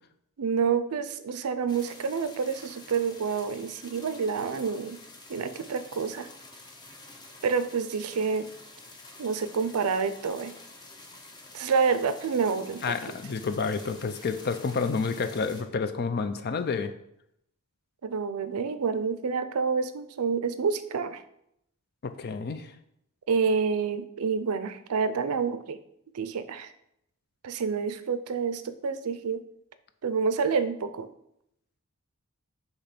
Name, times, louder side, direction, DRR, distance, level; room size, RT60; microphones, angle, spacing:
voice 1, 0.4-5.0 5.3-6.3 7.4-8.5 9.2-10.5 11.5-12.9 18.0-21.2 23.3-25.8 26.1-26.7 27.4-29.4 30.0-31.1, right 5 dB, 90° right, 12 dB, 0.5 m, -28 dB
sound 1, 1.7-15.6, left 2 dB, 20° left, 0.8 m, -49 dB
voice 2, 12.8-16.9 22.2-22.7, left 5 dB, 45° left, 10 dB, 0.5 m, -29 dB
6.7 x 2.9 x 5.8 m, 0.77 s
head